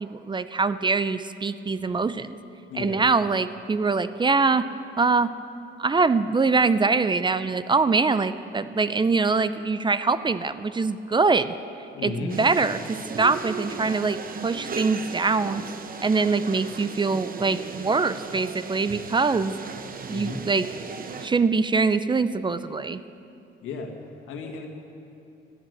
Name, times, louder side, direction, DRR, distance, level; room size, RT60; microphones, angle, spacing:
voice 1, 0.0-2.4 2.8-4.7 5.0-5.3 5.8-11.5 12.0-15.6 16.0-19.5 20.1-20.7 21.2-23.0, right 4 dB, 25° right, 13 dB, 0.5 m, -23 dB
voice 2, 2.7-3.0 11.9-12.4 20.1-20.4 23.6-23.9 24.3-24.7, left 4 dB, 90° left, 3 dB, 1.8 m, -34 dB
sound 1, 12.3-21.3, right 5 dB, 45° right, 1.0 m, -37 dB
14.0 x 10.5 x 7.8 m, 2.7 s
cardioid pair, 90°, 20 cm